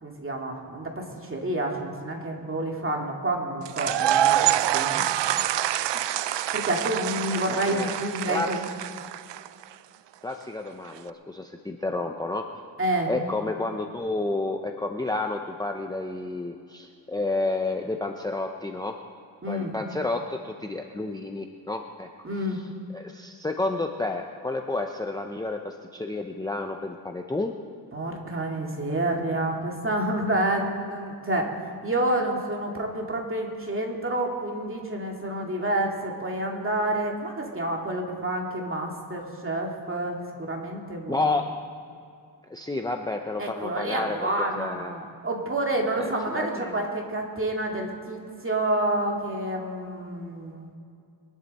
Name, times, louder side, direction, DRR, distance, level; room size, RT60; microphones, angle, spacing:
voice 1, 0.0-5.2 6.5-8.6 12.8-13.1 19.4-19.7 22.2-22.6 27.9-31.5 31.8-40.2 40.5-41.3 43.4-50.7, right 1 dB, 30° right, 0 dB, 2.4 m, -29 dB
sound 1, 3.7-9.6, right 12 dB, 75° right, 0.5 m, -26 dB
voice 2, 7.3-8.0 8.3-8.5 10.2-12.5 13.1-19.0 19.5-22.1 22.5-22.6 22.9-27.5 41.1-41.5 42.5-44.9 46.0-46.8, left 2 dB, 10° left, 3 dB, 0.7 m, -30 dB
22.5 x 11.0 x 4.2 m, 2.4 s
wide cardioid pair, 105°, 43 cm